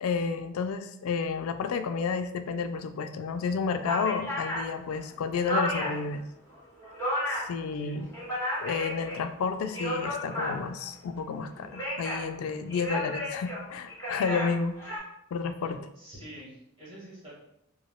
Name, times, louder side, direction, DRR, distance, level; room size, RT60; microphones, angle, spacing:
voice 1, 0.0-6.2 7.3-8.1 8.6-14.8 15.3-15.8, left 5 dB, 80° left, 9 dB, 0.3 m, -31 dB
sound 1, 3.3-3.4 3.8-6.1 6.5-7.6 8.0-9.2 9.6-10.8 11.5-12.3 12.7-15.0, equal, 15° left, 1.1 m, -33 dB
voice 2, 7.6-8.1 15.6-17.3, right 1 dB, 25° right, -6 dB, 1.1 m, -47 dB
4.0 x 2.2 x 2.2 m, 0.77 s
head